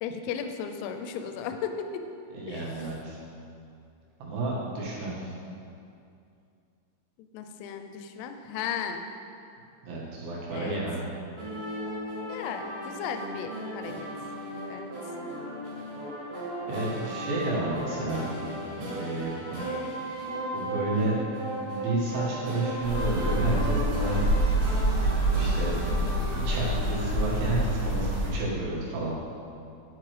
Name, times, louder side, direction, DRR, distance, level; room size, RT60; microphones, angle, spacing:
voice 1, 0.0-2.0 2.5-2.9 7.2-9.0 10.5-10.8 12.3-14.1 14.7-15.1 25.9-26.2, left 7 dB, 85° left, 7 dB, 3.1 m, -36 dB
voice 2, 2.3-3.2 4.2-5.3 9.8-11.0 16.7-18.2 19.0-19.4 20.5-21.2 21.7-24.7 25.3-25.7 26.2-29.1, right 2 dB, 75° right, -6 dB, 4.0 m, -31 dB
sound 1, 11.4-27.1, right 1 dB, 55° right, 3.8 m, -35 dB
sound 2, 22.8-28.3, right 1 dB, 90° right, 5.2 m, -27 dB
10.5 x 9.0 x 3.2 m, 2.5 s
omnidirectional pair, 5.7 m